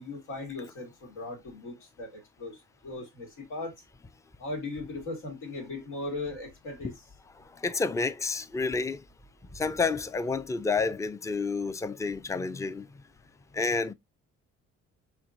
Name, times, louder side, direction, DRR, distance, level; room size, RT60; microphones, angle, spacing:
voice 1, 0.0-2.6 2.8-3.7 4.4-6.9, left 2 dB, 90° left, 1.8 m, -38 dB
voice 2, 7.6-9.0 9.5-12.9 13.5-13.9, left 4 dB, 10° left, 0.4 m, -29 dB
4.5 x 3.5 x 2.5 m
cardioid pair, 90°, 30 cm